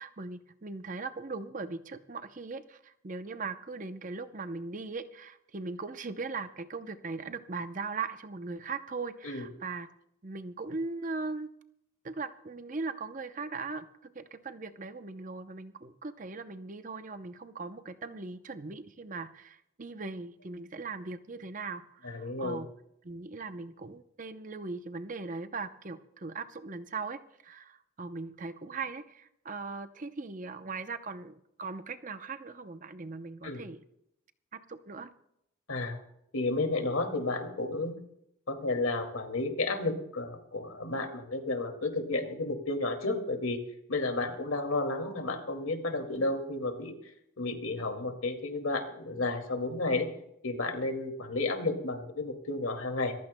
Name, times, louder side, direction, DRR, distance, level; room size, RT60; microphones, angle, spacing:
voice 1, 0.0-9.9 10.2-11.5 12.0-22.7 23.0-33.8 34.5-35.1, right 4 dB, 40° right, 10 dB, 0.7 m, -39 dB
voice 2, 22.0-22.6 33.4-33.6 35.7-36.0 36.3-37.9 38.5-43.6 43.9-46.9 47.4-50.1 50.4-53.1, left 2 dB, 85° left, 4 dB, 2.2 m, -32 dB
26.5 x 15.0 x 2.2 m, 0.78 s
head